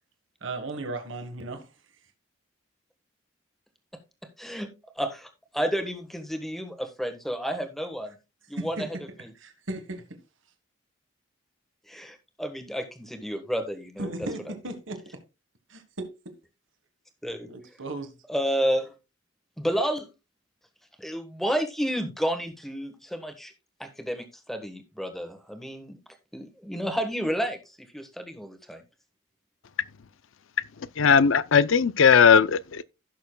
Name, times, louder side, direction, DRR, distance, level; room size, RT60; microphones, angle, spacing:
voice 1, 0.4-1.7 8.6-9.0 9.3-10.2 14.0-15.2 15.7-16.3 17.5-18.2, right 2 dB, 70° right, 1.4 m, -36 dB
voice 2, 4.4-4.7 5.0-8.2 8.5-9.3 11.9-14.1 17.2-17.5 18.3-18.9 19.6-20.1 21.0-23.5 23.8-26.0 26.3-28.8, equal, ahead, 1.3 m, -31 dB
voice 3, 31.0-32.8, left 6 dB, 75° left, 0.5 m, -18 dB
16.0 x 6.7 x 2.3 m
head